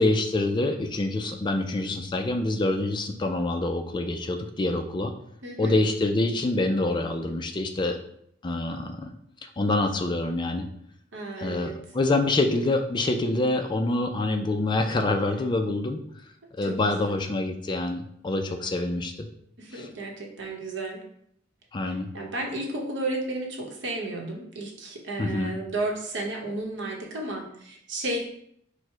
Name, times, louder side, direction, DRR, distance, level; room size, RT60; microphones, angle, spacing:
voice 1, 0.0-5.1 5.6-8.0 8.4-9.1 9.6-10.7 11.4-16.0 16.6-19.3 19.7-19.9 21.7-22.1 25.2-25.5, left 2 dB, 25° left, 5 dB, 0.3 m, -26 dB
voice 2, 5.4-5.7 11.1-11.7 16.7-17.1 19.6-21.0 21.9-28.2, right 2 dB, 75° right, 0 dB, 0.9 m, -33 dB
4.6 x 2.1 x 4.4 m, 0.70 s
head